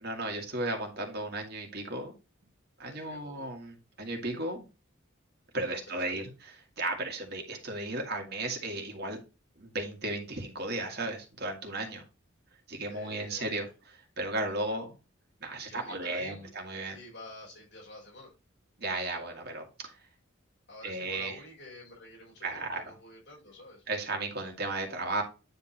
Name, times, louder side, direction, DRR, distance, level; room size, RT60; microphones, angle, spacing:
voice 1, 0.0-2.1 2.8-4.6 5.5-6.3 6.8-9.2 9.6-12.0 12.7-13.7 13.9-14.9 15.4-17.0 18.8-20.0 20.8-21.4 22.4-22.9 23.9-25.2, right 2 dB, 50° right, 2 dB, 1.9 m, -35 dB
voice 2, 2.8-3.5 5.5-6.3 12.9-13.7 14.5-14.6 15.6-16.5 16.9-18.3 20.7-23.8, left 2 dB, 55° left, -4 dB, 4.8 m, -49 dB
9.6 x 3.7 x 4.2 m, 0.30 s
head